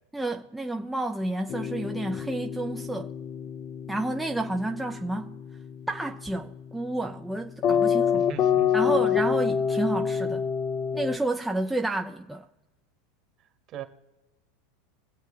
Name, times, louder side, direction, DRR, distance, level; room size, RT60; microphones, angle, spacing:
voice 1, 0.1-3.1 3.9-5.4 5.9-8.3 8.7-10.4 10.9-12.5, right 2 dB, 5° right, 0.6 m, -30 dB
sound 1, 1.5-11.2, left 7 dB, 40° left, 0.6 m, -28 dB
voice 2, 8.1-9.0 13.7-13.8, right 9 dB, 40° right, 1.5 m, -40 dB
23.5 x 7.8 x 3.3 m
supercardioid pair, 135°, 0 cm